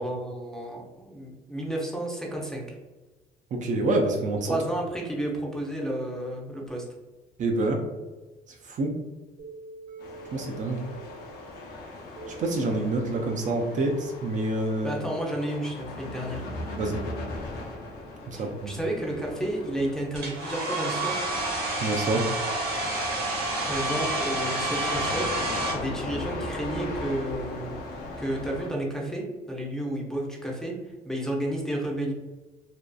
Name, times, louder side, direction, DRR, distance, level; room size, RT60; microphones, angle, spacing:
voice 1, 0.0-2.8 4.5-6.8 14.8-16.5 18.3-21.2 23.7-25.4 25.7-27.8 28.2-32.1, right 1 dB, 5° left, -1 dB, 0.5 m, -31 dB
voice 2, 3.5-4.5 7.4-7.8 8.7-8.9 10.3-10.8 12.3-15.0 16.8-17.0 18.3-18.8 21.7-22.3, right 2 dB, 50° right, 2 dB, 0.4 m, -27 dB
sound 1, 9.4-15.0, right 3 dB, 90° right, 1.0 m, -46 dB
sound 2, 10.0-28.7, left 2 dB, 75° left, 0.6 m, -39 dB
Domestic sounds home sounds, 20.1-25.7, right 2 dB, 65° right, 1.1 m, -29 dB
2.6 x 2.3 x 2.2 m, 1.2 s
cardioid pair, 110°, 17 cm